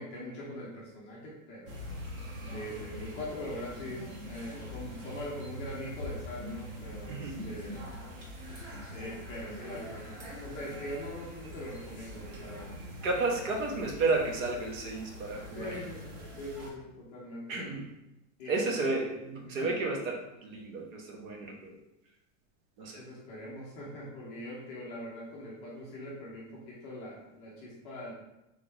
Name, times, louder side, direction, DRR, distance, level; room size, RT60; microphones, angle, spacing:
voice 1, 0.0-1.8 2.5-7.8 8.9-12.7 13.3-13.4 15.5-17.6 18.4-18.7 18.9-19.0 19.5-19.7 23.0-28.1, left 1 dB, 15° left, -6 dB, 0.4 m, -42 dB
sound 1, 1.7-16.7, equal, 35° right, 1.0 m, -43 dB
voice 2, 13.0-15.7 17.5-17.8 18.5-21.8 22.8-23.0, right 3 dB, 75° right, 1 dB, 1.2 m, -32 dB
3.4 x 3.4 x 4.0 m, 0.93 s
supercardioid pair, 175°, 39 cm